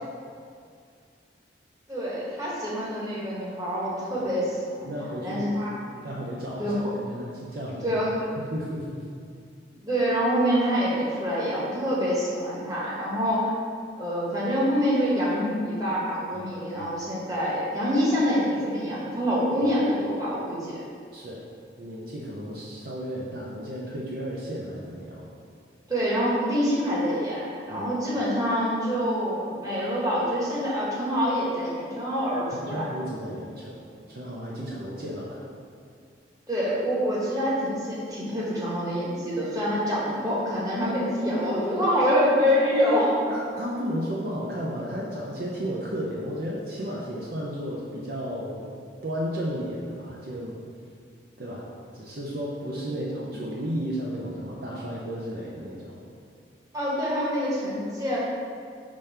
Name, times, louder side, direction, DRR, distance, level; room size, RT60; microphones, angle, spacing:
voice 1, 1.9-5.7 6.6-6.9 7.8-8.1 9.8-13.5 14.0-20.8 25.9-32.9 34.6-34.7 36.5-43.2 52.9-53.3 56.7-58.2, equal, 20° right, -7 dB, 1.3 m, -26 dB
voice 2, 4.8-5.5 6.0-8.0 8.4-9.1 16.3-16.9 21.1-21.4 21.8-25.3 27.7-27.9 32.5-33.8 34.1-35.5 43.3-48.7 49.0-50.6 51.4-51.6 51.9-56.0, equal, 55° right, -4 dB, 0.6 m, -33 dB
5.3 x 3.3 x 5.6 m, 2.3 s
head